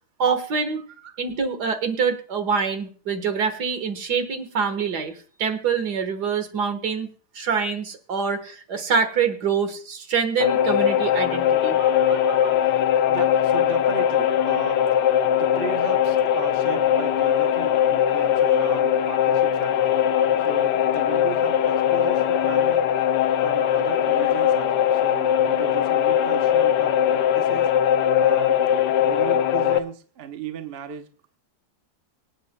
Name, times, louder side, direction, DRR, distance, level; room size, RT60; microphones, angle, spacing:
voice 1, 0.2-0.9 1.2-5.1 5.4-11.8, right 6 dB, 70° right, 8 dB, 2.0 m, -25 dB
sound 1, 10.4-29.8, left 10 dB, 85° left, 1.3 m, -20 dB
voice 2, 11.8-20.0 20.4-22.9 23.4-27.7 28.2-28.6 29.0-31.1, right 7 dB, 40° right, 7 dB, 1.0 m, -37 dB
24.5 x 9.0 x 2.2 m, 0.42 s
omnidirectional pair, 1.8 m